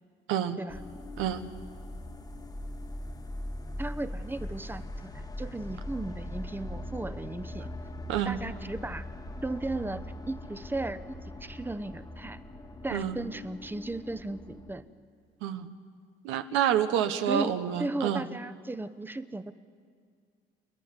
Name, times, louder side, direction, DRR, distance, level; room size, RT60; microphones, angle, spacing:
sound 1, 0.7-14.8, left 1 dB, 20° left, 1.2 m, -41 dB
voice 1, 3.8-7.7 8.2-9.0 9.4-12.4 12.8-14.8 17.3-19.5, right 2 dB, 10° right, 13 dB, 0.9 m, -36 dB
voice 2, 16.2-18.3, right 10 dB, 85° right, 8 dB, 1.1 m, -28 dB
29.5 x 10.5 x 9.7 m, 2.1 s
cardioid pair, 90°, 20 cm